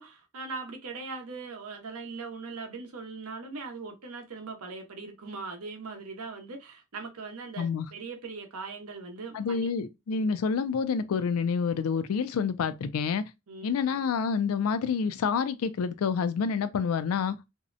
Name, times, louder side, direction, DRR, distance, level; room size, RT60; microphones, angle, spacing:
voice 1, 0.0-9.7 10.1-10.3 13.5-13.7, right 4 dB, 75° right, 0.7 m, -40 dB
voice 2, 7.6-7.9 9.3-13.2 13.6-17.4, left 6 dB, 75° left, 0.3 m, -28 dB
2.6 x 2.1 x 2.4 m
head